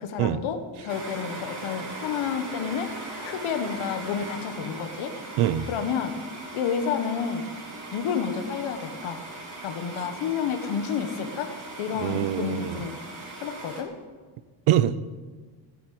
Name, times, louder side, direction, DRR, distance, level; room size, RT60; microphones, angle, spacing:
voice 1, 0.0-2.9 3.2-5.1 5.7-6.2 6.5-7.5 7.9-9.2 9.6-13.0 13.4-13.9, left 7 dB, 85° left, 6 dB, 1.7 m, -30 dB
sound 1, 0.9-13.8, right 2 dB, 35° right, 3.8 m, -39 dB
voice 2, 5.4-5.7 12.0-12.8 14.7-15.2, right 11 dB, 85° right, 15 dB, 0.9 m, -24 dB
15.5 x 8.6 x 9.5 m, 1.4 s
cardioid pair, 170°, 47 cm